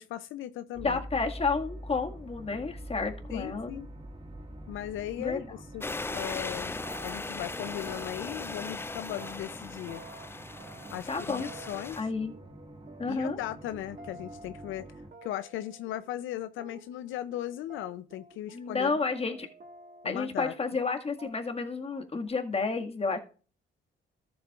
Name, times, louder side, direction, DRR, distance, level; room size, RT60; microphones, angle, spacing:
voice 1, 0.0-1.0 3.3-3.9 4.7-5.4 5.7-5.8 6.1-10.0 10.9-12.1 13.1-14.8 15.2-19.0 20.0-20.5, left 13 dB, 85° left, 12 dB, 0.6 m, -37 dB
sound 1, 0.7-15.1, right 1 dB, 25° right, 1.8 m, -46 dB
voice 2, 0.8-3.8 5.2-5.4 11.1-11.5 12.0-12.3 13.0-13.4 18.5-19.5 20.0-23.2, left 4 dB, 30° left, 4 dB, 1.9 m, -31 dB
sound 2, 5.7-6.6 6.8-8.9 9.1-20.9 21.2-21.7 21.9-22.3, right 3 dB, 45° right, 1.6 m, -51 dB
sound 3, 5.8-12.0, left 3 dB, 10° left, 0.4 m, -38 dB
13.5 x 7.7 x 2.4 m, 0.36 s
cardioid pair, 90°, 20 cm